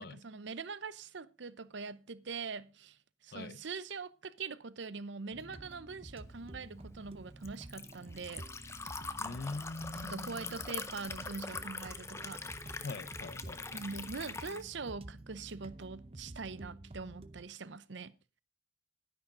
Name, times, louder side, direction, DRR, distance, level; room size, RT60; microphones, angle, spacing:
voice 1, 0.0-8.5 10.0-12.4 13.7-18.1, right 4 dB, 70° right, 0.7 m, -43 dB
sound 1, 5.3-17.4, right 1 dB, 30° right, 0.7 m, -50 dB
Liquid, 6.3-14.6, left 4 dB, 15° left, 0.7 m, -43 dB
voice 2, 9.2-10.6 12.8-13.8, left 3 dB, 55° left, 0.6 m, -43 dB
11.5 x 10.0 x 3.7 m
head